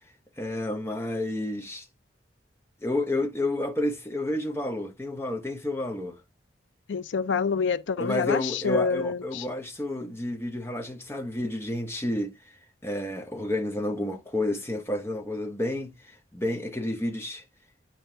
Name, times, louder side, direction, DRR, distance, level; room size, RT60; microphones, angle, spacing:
voice 1, 0.4-1.9 2.8-6.2 8.0-12.4 12.8-17.4, left 1 dB, 15° left, 0.9 m, -30 dB
voice 2, 6.9-9.4, left 5 dB, 85° left, 0.5 m, -27 dB
9.2 x 4.5 x 3.3 m
head